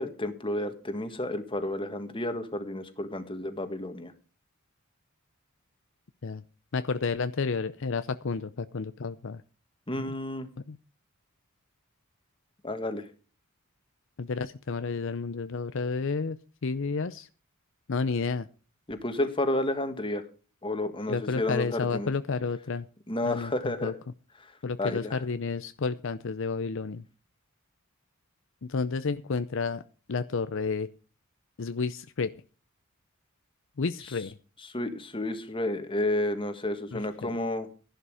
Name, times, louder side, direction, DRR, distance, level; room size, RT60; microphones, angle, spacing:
voice 1, 0.0-4.1 9.9-10.5 12.6-13.1 18.9-20.2 20.6-22.1 23.1-23.9 24.4-25.1 34.7-37.7, left 1 dB, 25° left, 8 dB, 1.8 m, -31 dB
voice 2, 6.7-9.4 9.9-10.1 10.7-10.8 14.2-17.3 17.9-18.5 21.1-22.9 23.2-23.9 24.6-27.0 28.6-29.8 30.1-30.9 31.6-32.3 33.8-34.4 36.9-37.4, left 4 dB, 65° left, 12 dB, 0.6 m, -31 dB
13.0 x 11.5 x 4.9 m, 0.36 s
head